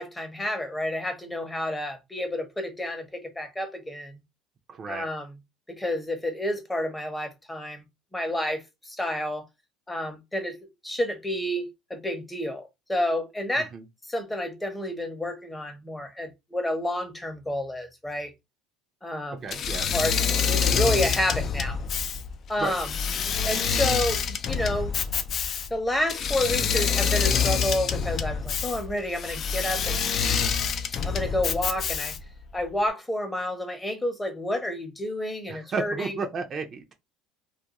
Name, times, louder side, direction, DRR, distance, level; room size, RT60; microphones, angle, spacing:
voice 1, 0.0-4.2 4.9-5.3 5.7-7.8 8.1-9.5 9.9-10.6 10.8-13.7 14.1-18.3 19.0-19.4 19.9-21.8 22.5-22.9 23.4-24.9 25.7-30.0 31.0-32.1 32.5-36.2, left 1 dB, 10° left, 0.7 m, -30 dB
voice 2, 4.7-5.1 13.6-13.8 19.4-20.0 20.6-20.8 22.6-22.7 35.5-36.9, right 4 dB, 40° right, 0.5 m, -33 dB
Engine / Mechanisms, 19.5-32.4, left 7 dB, 45° left, 0.4 m, -26 dB
2.3 x 2.2 x 2.9 m
supercardioid pair, 95°, 0 cm